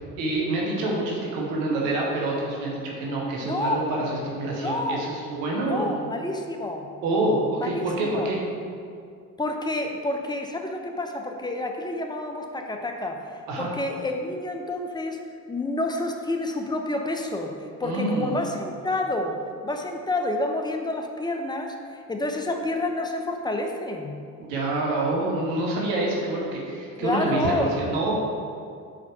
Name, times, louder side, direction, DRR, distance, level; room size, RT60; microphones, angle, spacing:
voice 1, 0.2-6.0 7.0-8.4 13.5-13.7 17.8-18.4 24.4-28.2, right 2 dB, 70° right, -2 dB, 1.2 m, -27 dB
voice 2, 3.4-3.8 4.6-5.0 5.6-6.9 7.5-8.3 9.4-13.2 13.6-15.2 15.5-21.7 22.1-24.2 27.0-27.7, left 2 dB, 10° left, 3 dB, 0.7 m, -29 dB
4.9 x 4.4 x 5.9 m, 2.3 s
figure-of-eight pair, 45°, 47 cm